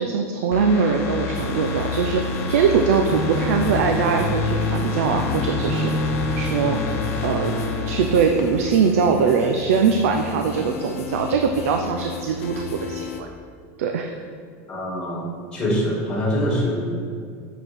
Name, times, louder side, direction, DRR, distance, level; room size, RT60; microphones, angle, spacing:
voice 1, 0.0-6.8 7.2-7.5 7.9-13.3 13.8-14.2, right 6 dB, 70° right, 4 dB, 0.7 m, -22 dB
sound 1, 0.5-9.2 9.5-9.6, left 4 dB, 35° left, 0.9 m, -30 dB
sound 2, 1.3-13.2, left 6 dB, 85° left, 0.9 m, -33 dB
sound 3, 3.1-8.2, equal, 10° right, 1.2 m, -28 dB
voice 2, 14.7-16.8, equal, 10° left, -4 dB, 2.3 m, -24 dB
8.6 x 7.1 x 4.6 m, 2.2 s
supercardioid pair, 175°, 8 cm